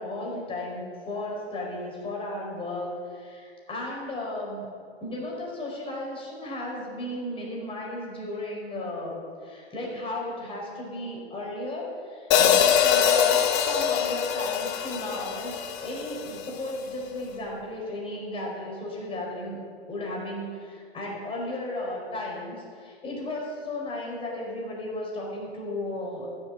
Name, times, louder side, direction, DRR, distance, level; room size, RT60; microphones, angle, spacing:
voice 1, 0.0-4.7 5.0-19.6 19.9-26.3, left 1 dB, 15° left, -3 dB, 4.9 m, -34 dB
Hi-hat, 12.3-16.5, left 8 dB, 35° left, 1.5 m, -23 dB
14.5 x 8.5 x 7.8 m, 2.1 s
hypercardioid pair, 125°, 32 cm